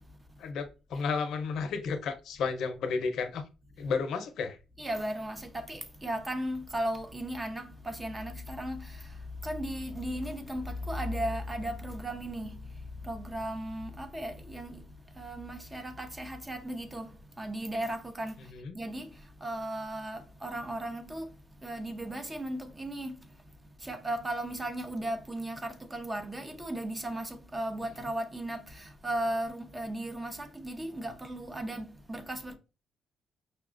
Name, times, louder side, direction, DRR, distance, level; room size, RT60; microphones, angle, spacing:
voice 1, 0.4-3.4 3.8-4.6 18.5-18.8, left 5 dB, 75° left, 0.6 m, -32 dB
voice 2, 4.8-9.1 9.4-12.6 13.0-14.8 15.2-17.1 17.4-18.4 18.7-19.1 19.4-21.3 21.6-23.2 23.8-32.6, right 1 dB, 20° right, 0.7 m, -36 dB
5.3 x 2.3 x 2.5 m
cardioid pair, 90°, 0 cm